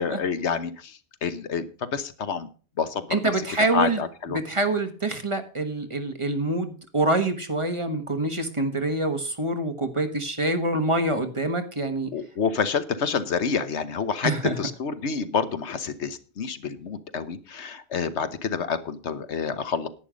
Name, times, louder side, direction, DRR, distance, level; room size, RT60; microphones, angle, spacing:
voice 1, 0.0-2.5 2.8-3.2 3.7-4.4 12.1-14.3 14.6-19.9, left 6 dB, 80° left, 12 dB, 1.3 m, -28 dB
voice 2, 3.1-4.0 4.3-12.1 14.2-14.6, right 2 dB, 30° right, 7 dB, 1.3 m, -26 dB
11.0 x 10.0 x 5.1 m, 0.38 s
omnidirectional pair, 1.1 m